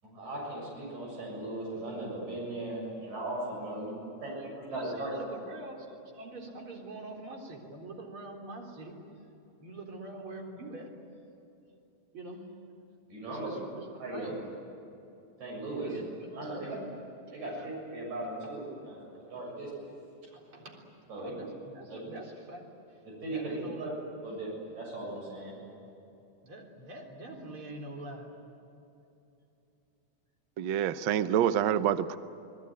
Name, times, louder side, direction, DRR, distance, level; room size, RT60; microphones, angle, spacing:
voice 1, 0.0-3.9 4.2-4.3 4.6-5.1 13.1-13.5 14.0-14.3 15.4-16.0 16.4-16.7 17.3-19.9 21.1-21.3 21.9-22.0 23.2-23.9 24.2-24.5 24.8-25.5, right 2 dB, 70° right, -3 dB, 8.7 m, -38 dB
voice 2, 4.3-8.9 9.6-10.9 12.1-12.5 13.3-14.4 15.8-16.8 17.5-17.7 18.4-18.5 19.3-19.4 20.3-23.0 23.3-24.0 26.4-28.3, right 2 dB, 45° right, 0 dB, 4.5 m, -45 dB
voice 3, 30.6-32.2, right 10 dB, 85° right, 12 dB, 1.0 m, -27 dB
29.5 x 19.5 x 9.4 m, 2.8 s
omnidirectional pair, 3.4 m